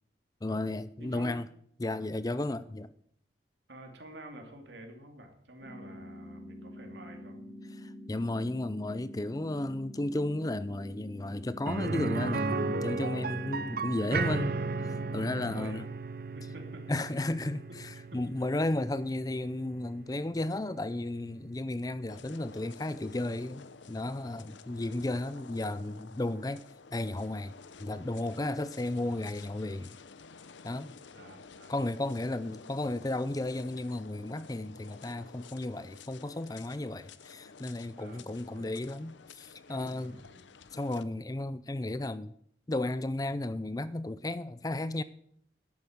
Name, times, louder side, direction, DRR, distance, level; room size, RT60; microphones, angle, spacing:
voice 1, 0.4-1.4 1.8-2.9 7.8-15.9 16.9-26.6 26.9-27.5 27.8-30.0 30.6-30.9 31.7-40.2 40.7-42.3 42.7-45.0, left 2 dB, 20° left, 0.4 m, -34 dB
voice 2, 1.0-1.3 3.7-7.4 15.3-15.9 16.3-17.0 17.7-17.8 24.8-25.0 31.1-31.7 38.0-38.7 39.7-40.4, right 1 dB, 70° right, 2.7 m, -49 dB
sound 1, 5.6-15.6, left 1 dB, 25° right, 4.4 m, -46 dB
sound 2, 11.7-21.4 21.7-21.8 24.3-24.4, right 4 dB, 50° right, 0.6 m, -35 dB
sound 3, 22.1-41.0, left 5 dB, 75° left, 0.7 m, -52 dB
11.0 x 8.7 x 8.0 m
head